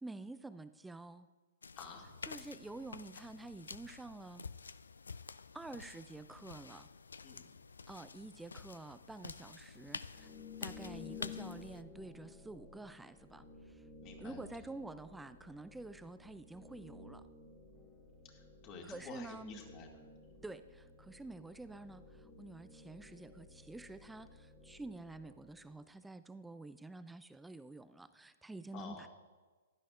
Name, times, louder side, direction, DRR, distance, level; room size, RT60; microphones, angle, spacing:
voice 1, 0.0-1.3 2.3-4.4 5.5-6.9 7.9-10.3 10.6-13.8 14.2-17.2 18.8-19.6 20.4-29.1, right 2 dB, 5° right, 13 dB, 0.4 m, -49 dB
sound 1, 1.6-11.8, left 5 dB, 80° left, 0.3 m, -49 dB
voice 2, 1.8-2.2 7.2-7.5 14.0-14.4 18.2-19.9 20.2-20.4 28.7-29.1, left 5 dB, 35° left, 1 dB, 2.2 m, -51 dB
sound 2, 10.1-25.9, left 4 dB, 15° left, 1.6 m, -54 dB
15.5 x 11.5 x 2.5 m, 1.4 s
hypercardioid pair, 120°, 0 cm